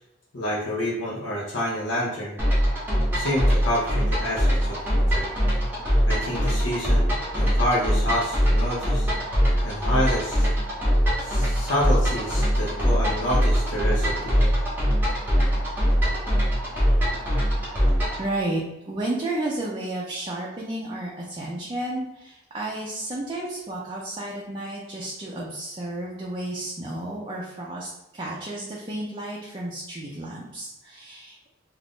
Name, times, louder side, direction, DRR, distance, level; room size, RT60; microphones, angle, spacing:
voice 1, 0.3-2.4 3.1-5.3 6.1-7.1 7.3-9.1 9.6-10.5 11.2-14.6, equal, 80° left, -5 dB, 0.7 m, -28 dB
sound 1, 2.4-18.3, equal, 10° right, 0.8 m, -22 dB
voice 2, 18.2-31.4, right 1 dB, 25° right, -4 dB, 0.4 m, -32 dB
2.5 x 2.4 x 3.4 m, 0.91 s
head